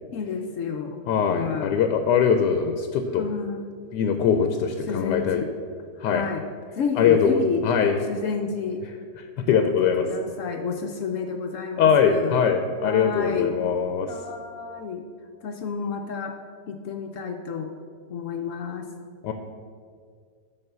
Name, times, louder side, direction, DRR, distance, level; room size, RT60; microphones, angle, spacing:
voice 1, 0.1-1.8 3.2-3.6 4.9-5.5 6.0-6.4 6.7-7.7 8.1-8.8 9.5-12.4 12.8-13.6 14.1-15.1 15.4-16.3 16.7-17.7 18.1-18.9, left 6 dB, 65° left, 4 dB, 0.8 m, -30 dB
voice 2, 1.1-3.3 3.9-5.4 6.0-6.2 7.0-8.0 9.4-10.1 11.8-14.1 19.2-19.3, left 6 dB, 90° left, 6 dB, 1.2 m, -22 dB
9.8 x 3.9 x 6.7 m, 2.1 s
omnidirectional pair, 1.8 m